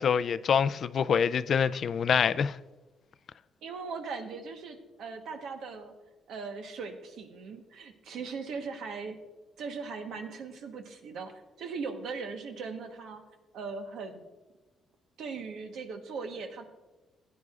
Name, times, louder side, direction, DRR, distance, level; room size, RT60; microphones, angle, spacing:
voice 1, 0.0-2.6, left 7 dB, 60° left, 0.3 m, -26 dB
voice 2, 3.6-5.9 6.3-9.2 9.6-13.2 13.5-14.3 15.2-16.7, right 4 dB, 80° right, 1.2 m, -39 dB
15.5 x 9.4 x 2.5 m
cardioid pair, 85°, 0 cm